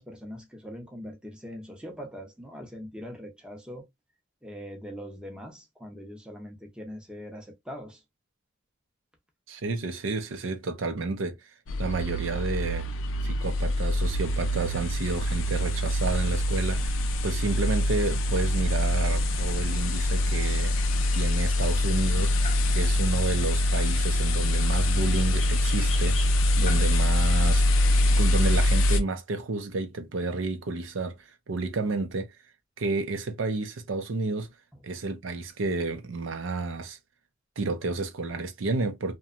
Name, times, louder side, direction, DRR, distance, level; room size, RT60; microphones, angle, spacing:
voice 1, 0.0-3.9 4.4-8.0, equal, 5° right, 0.6 m, -42 dB
voice 2, 9.5-11.4 11.8-12.9 13.2-20.8 21.1-22.3 22.7-26.3 26.6-27.6 28.1-32.3 32.8-34.5 34.8-37.0 37.6-39.2, right 3 dB, 75° right, 0.5 m, -31 dB
sound 1, 11.7-29.0, left 1 dB, 85° left, 0.4 m, -24 dB
sound 2, 18.0-28.6, left 2 dB, 35° left, 0.6 m, -44 dB
2.8 x 2.2 x 2.3 m
head